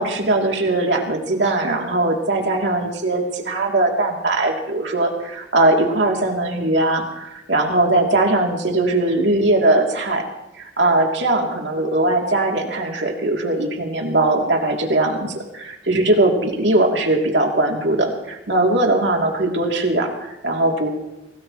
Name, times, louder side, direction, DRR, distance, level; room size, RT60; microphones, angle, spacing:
voice 1, 0.0-10.3 10.6-20.9, right 2 dB, 85° right, 1 dB, 2.9 m, -20 dB
25.0 x 18.5 x 3.1 m, 0.89 s
head